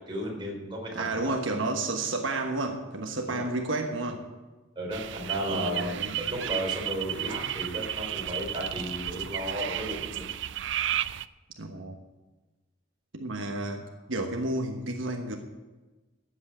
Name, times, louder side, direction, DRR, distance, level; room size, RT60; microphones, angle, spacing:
voice 1, 0.0-1.3 3.3-3.5 4.8-5.9 6.2-10.3, equal, 25° right, -1 dB, 3.6 m, -34 dB
voice 2, 0.9-4.3 5.5-6.2 11.6-11.9 13.1-15.4, right 2 dB, 80° right, 3 dB, 1.2 m, -31 dB
sound 1, 4.9-11.3, right 11 dB, 65° right, 0.4 m, -33 dB
13.0 x 8.2 x 7.5 m, 1.2 s
head